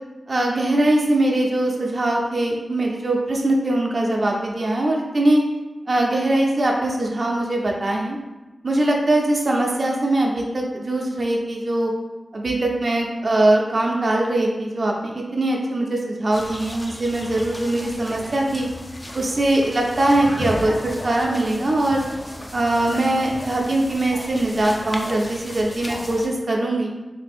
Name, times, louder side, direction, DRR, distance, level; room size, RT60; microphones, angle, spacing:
voice 1, 0.3-5.4 5.9-8.2 8.6-11.9 12.3-18.7 19.1-22.1 22.5-26.9, right 1 dB, 50° right, -1 dB, 0.5 m, -21 dB
sound 1, 16.3-26.3, left 1 dB, 20° left, 0.4 m, -35 dB
3.3 x 2.7 x 3.4 m, 1.1 s
wide cardioid pair, 100°, 0 cm